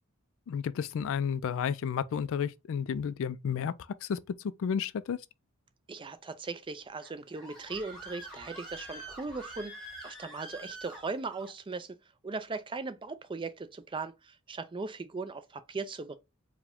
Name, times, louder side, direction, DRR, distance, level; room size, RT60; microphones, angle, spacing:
voice 1, 0.5-3.7 4.0-4.2 4.6-5.2, left 7 dB, 65° left, 0.3 m, -31 dB
voice 2, 5.9-12.0 12.2-16.2, right 3 dB, 25° right, 0.4 m, -38 dB
Screaming, 7.0-11.5, right 1 dB, 5° left, 1.6 m, -46 dB
4.8 x 2.2 x 3.5 m
head